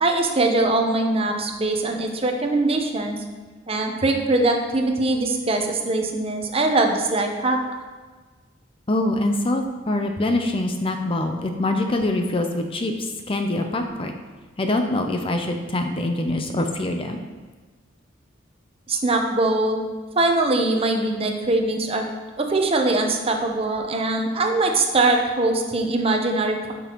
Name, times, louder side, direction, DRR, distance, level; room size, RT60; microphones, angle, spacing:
voice 1, 0.0-3.2 3.7-7.6 18.9-19.8 20.2-22.0 22.4-26.7, right 2 dB, 30° right, 3 dB, 0.8 m, -22 dB
voice 2, 8.9-14.1 14.6-17.2, left 1 dB, 30° left, 5 dB, 0.5 m, -24 dB
12.0 x 6.1 x 3.0 m, 1.3 s
head